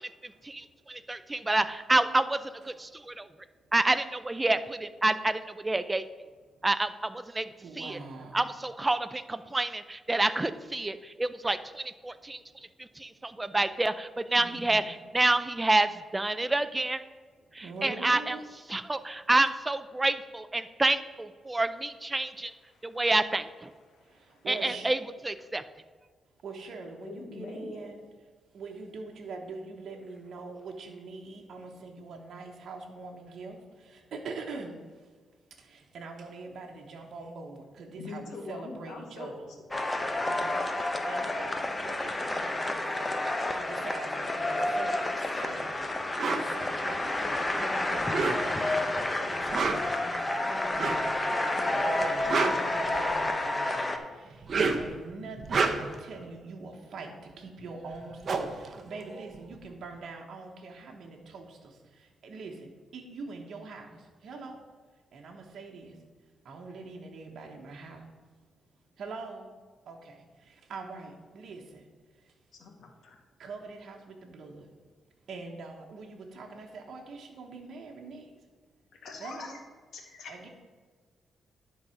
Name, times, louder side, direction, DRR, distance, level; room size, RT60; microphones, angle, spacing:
voice 1, 0.4-2.4 2.7-3.2 3.7-6.0 6.6-7.5 7.8-8.0 8.3-12.4 13.0-17.0 17.6-18.4 18.7-22.5 22.8-23.7 24.5-25.0 25.2-25.6, right 2 dB, 15° right, 12 dB, 0.4 m, -28 dB
voice 2, 7.6-8.5 14.3-14.9 17.6-18.4 24.1-24.9 26.4-28.1 28.5-34.8 35.6-39.3 40.2-43.2 43.6-64.6 65.1-65.9 66.4-68.0 69.0-69.5 69.9-71.8 73.4-74.7 75.3-78.3 79.2-79.6 80.3-80.5, right 3 dB, 65° right, 1 dB, 1.1 m, -43 dB
voice 3, 22.6-23.1 23.9-24.4 27.0-27.9 38.0-39.7 72.6-73.2 79.0-79.6 79.9-80.3, left 3 dB, 75° left, 1 dB, 1.7 m, -44 dB
sound 1, 39.7-54.0, left 2 dB, 20° left, 0.8 m, -30 dB
sound 2, 46.2-46.5 48.0-48.7 49.4-50.0 50.7-51.1 52.0-53.3 54.3-54.9 55.4-56.0 57.6-57.7 57.9-59.6, right 4 dB, 50° right, 0.8 m, -29 dB
10.5 x 4.0 x 5.7 m, 1.5 s
cardioid pair, 105°, 0 cm